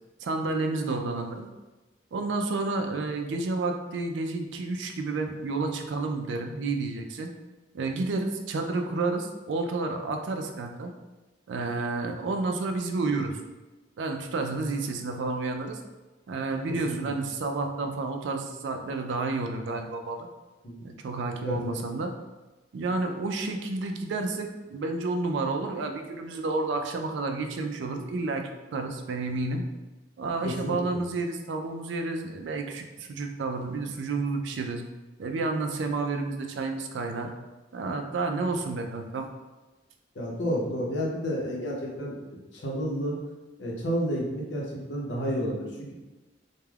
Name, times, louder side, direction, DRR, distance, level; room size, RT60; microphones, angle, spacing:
voice 1, 0.2-1.5 2.1-7.3 7.7-10.9 11.5-13.3 14.0-15.8 16.3-20.3 20.8-22.1 22.7-29.6 30.2-34.8 35.2-37.3 37.7-39.3, right 3 dB, 90° right, 5 dB, 0.3 m, -30 dB
voice 2, 20.6-21.0 21.4-21.8 30.4-31.0 40.1-43.2 43.6-45.9, equal, 90° left, -3 dB, 0.7 m, -31 dB
2.3 x 2.2 x 3.2 m, 1.1 s
head